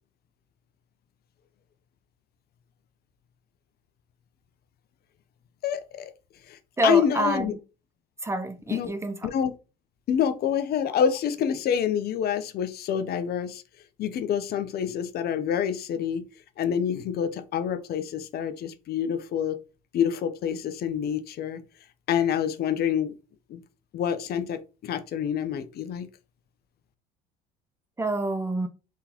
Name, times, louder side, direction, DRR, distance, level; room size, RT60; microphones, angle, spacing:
voice 1, 5.6-6.1 6.5-7.5 8.7-8.9 9.2-9.5 10.1-13.6 14.0-16.2 16.6-19.6 19.9-21.6 22.1-23.1 23.5-23.6 23.9-26.1, left 8 dB, 50° left, 0.6 m, -27 dB
voice 2, 6.8-7.6 8.2-9.3 28.0-28.7, right 2 dB, 15° right, 0.6 m, -27 dB
3.8 x 3.6 x 2.8 m
hypercardioid pair, 75°, 20 cm